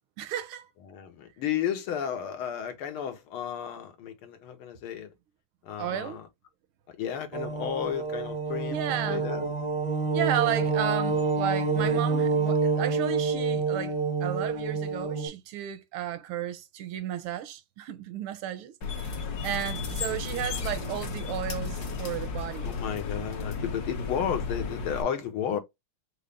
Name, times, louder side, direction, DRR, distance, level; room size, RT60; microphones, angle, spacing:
voice 1, 0.2-0.7 5.8-6.2 8.7-9.2 10.1-13.9 14.2-18.7 19.0-19.1 19.4-22.7, right 11 dB, 85° right, 1.6 m, -33 dB
voice 2, 0.9-5.1 5.6-6.3 6.9-8.8 9.1-9.5 22.6-25.6, left 9 dB, 80° left, 1.9 m, -33 dB
sound 1, 7.3-15.3, right 4 dB, 25° right, 0.6 m, -28 dB
sound 2, 18.8-25.0, left 4 dB, 55° left, 1.4 m, -33 dB
5.4 x 2.1 x 3.5 m
omnidirectional pair, 2.3 m